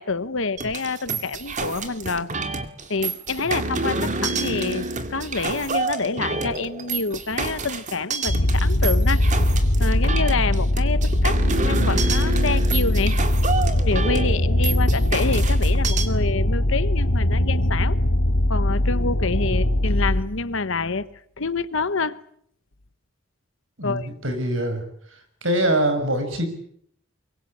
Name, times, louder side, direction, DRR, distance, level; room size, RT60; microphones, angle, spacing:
voice 1, 0.0-2.3 2.9-9.2 9.8-13.2 13.8-18.0 18.5-22.2 23.8-24.1, left 4 dB, 65° left, 1.1 m, -27 dB
sound 1, 0.6-16.1, right 3 dB, 35° right, 2.2 m, -28 dB
sound 2, 8.3-20.2, left 1 dB, 90° left, 2.3 m, -21 dB
voice 2, 23.8-24.8 25.4-26.5, right 1 dB, 65° right, 6.3 m, -24 dB
24.0 x 23.5 x 8.6 m
head